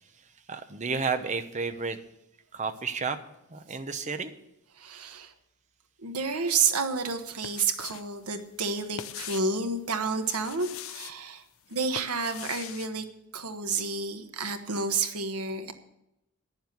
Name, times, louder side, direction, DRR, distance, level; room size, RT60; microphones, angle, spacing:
voice 1, 0.5-2.0 2.5-3.2 3.5-4.3, right 4 dB, 30° right, 9 dB, 0.8 m, -31 dB
voice 2, 4.8-5.3 6.0-11.4 11.7-13.0 13.3-15.7, right 4 dB, 85° right, 7 dB, 1.3 m, -30 dB
sound 1, 7.2-8.1 8.4-9.6 10.2-11.2 11.7-12.9, left 9 dB, 65° left, 0.6 m, -41 dB
9.8 x 7.3 x 9.2 m, 0.84 s
head